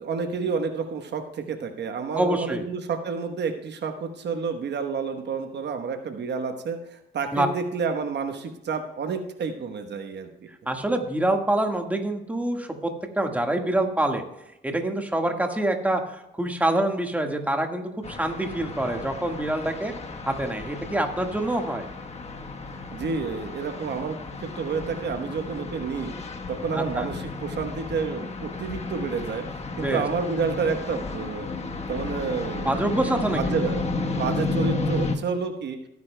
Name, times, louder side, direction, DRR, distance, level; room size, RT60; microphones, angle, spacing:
voice 1, 0.0-10.3 22.9-26.1 26.5-29.4 29.8-31.5 31.9-33.8 34.1-35.8, right 5 dB, 60° right, 6 dB, 1.1 m, -29 dB
voice 2, 2.2-2.6 7.3-7.5 10.7-14.2 14.6-16.0 16.4-19.9 20.3-21.9 26.7-27.1 29.8-30.0 32.6-33.5, right 1 dB, 5° right, 4 dB, 1.6 m, -26 dB
sound 1, 18.0-35.2, left 3 dB, 35° left, 1.2 m, -33 dB
17.0 x 9.5 x 2.2 m, 0.88 s
cardioid pair, 90°, 20 cm